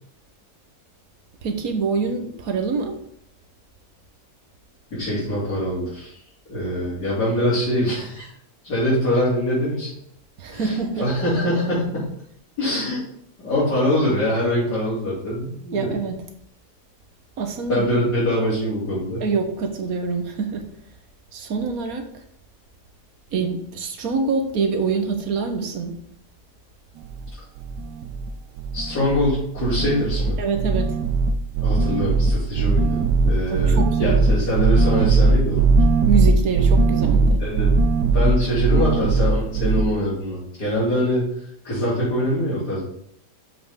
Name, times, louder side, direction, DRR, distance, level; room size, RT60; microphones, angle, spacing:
voice 1, 1.4-2.9 10.4-11.0 15.7-16.1 17.4-17.9 19.2-20.6 21.3-22.0 23.3-25.9 30.4-30.9 33.5-34.4 36.1-37.4, right 5 dB, 65° right, 5 dB, 1.5 m, -25 dB
voice 2, 4.9-6.2 6.5-8.3 8.6-9.9 10.5-12.1 12.6-13.0 13.4-16.0 17.7-19.2 28.7-30.4 31.6-35.7 37.4-41.3 41.6-42.8, left 1 dB, 85° left, -12 dB, 3.7 m, -23 dB
sound 1, 27.0-27.3 27.6-28.3 28.6-29.3 29.6-39.8, right 3 dB, 85° right, 1.3 m, -19 dB
7.1 x 6.0 x 3.6 m, 0.71 s
omnidirectional pair, 1.7 m